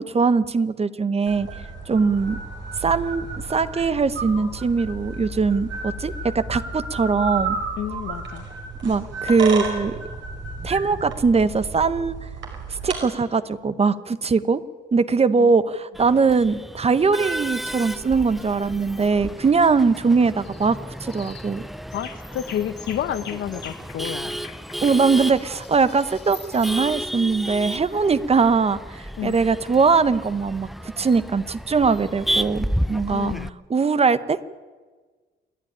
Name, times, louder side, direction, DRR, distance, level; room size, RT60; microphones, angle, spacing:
voice 1, 0.0-1.5 1.9-2.4 2.8-7.6 8.8-10.0 10.6-12.2 12.7-14.6 14.9-21.6 24.8-28.8 29.2-30.7 31.0-33.3 33.7-34.4, right 4 dB, 30° right, 14 dB, 0.9 m, -21 dB
sound 1, 1.3-13.0, right 4 dB, 70° right, 5.3 m, -32 dB
voice 2, 7.8-8.5 15.4-15.5 21.9-24.3 29.2-29.4 33.1-33.5, left 10 dB, 75° left, 12 dB, 1.1 m, -30 dB
Male speech man speaking / Laughter / Chatter, 15.9-33.5, equal, ahead, 0.6 m, -32 dB
sound 2, 20.4-20.7 21.1-21.5 21.9-26.8, left 7 dB, 55° left, 1.8 m, -44 dB
27.5 x 9.9 x 10.0 m, 1.4 s
cardioid pair, 90°, 20 cm